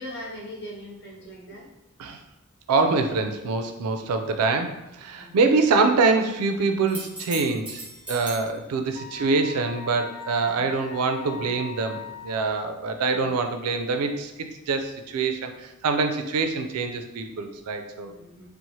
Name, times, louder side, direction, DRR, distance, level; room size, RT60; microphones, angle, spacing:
voice 1, 0.0-1.7 5.2-5.4 10.4-10.7 11.3-11.5 12.9-13.4 18.0-18.5, equal, 50° left, -3 dB, 0.6 m, -41 dB
voice 2, 2.7-14.3 14.7-18.1, right 4 dB, 85° right, 6 dB, 0.3 m, -25 dB
sound 1, 6.9-8.5 12.2-12.3, right 1 dB, 5° right, 0.5 m, -37 dB
Wind instrument woodwind instrument, 9.0-12.4, left 6 dB, 90° left, 0.4 m, -39 dB
2.9 x 2.0 x 2.7 m, 0.96 s
head